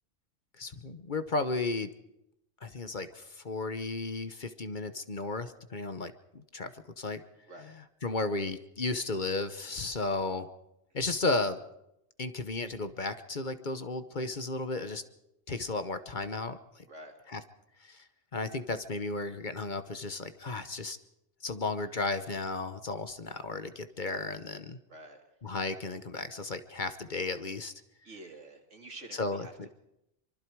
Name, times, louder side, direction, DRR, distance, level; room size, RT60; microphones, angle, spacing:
voice 1, 0.6-1.9 2.6-6.7 7.0-7.2 8.0-10.5 10.9-11.6 12.2-15.0 15.5-16.8 17.3-17.4 17.8-18.0 18.3-21.0 21.4-24.8 25.4-27.7 29.2-29.7, left 3 dB, 45° left, 10 dB, 1.1 m, -34 dB
voice 2, 16.9-17.2 24.9-25.2 28.0-29.7, right 2 dB, 80° right, 3 dB, 3.1 m, -48 dB
24.5 x 24.5 x 4.7 m, 0.83 s
omnidirectional pair, 1.2 m